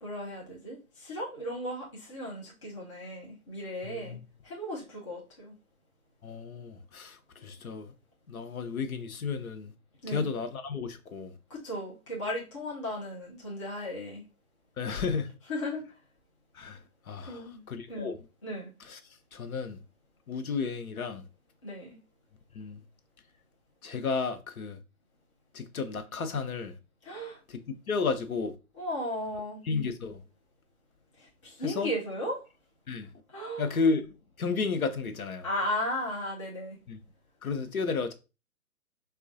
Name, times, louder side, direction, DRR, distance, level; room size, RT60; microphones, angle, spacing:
voice 1, 0.0-4.2 4.4-5.5 10.0-10.3 11.5-14.2 15.5-15.8 17.3-17.6 17.9-18.1 18.4-18.7 21.6-22.0 27.0-27.4 28.7-29.6 31.2-32.4 33.3-33.7 35.4-36.8, left 1 dB, 20° left, 0.5 m, -35 dB
voice 2, 3.8-4.2 6.2-7.9 8.3-9.7 10.1-11.3 14.8-15.3 16.5-16.8 17.1-17.4 17.7-18.2 18.9-19.0 19.3-19.8 20.3-21.3 22.5-22.8 23.8-24.8 25.5-26.7 27.5-27.6 27.9-28.5 29.7-30.2 31.6-31.9 32.9-33.1 33.6-35.4 36.9-37.0 37.4-38.1, left 4 dB, 70° left, 0.7 m, -32 dB
4.4 x 2.3 x 2.6 m
figure-of-eight pair, 140°, 44 cm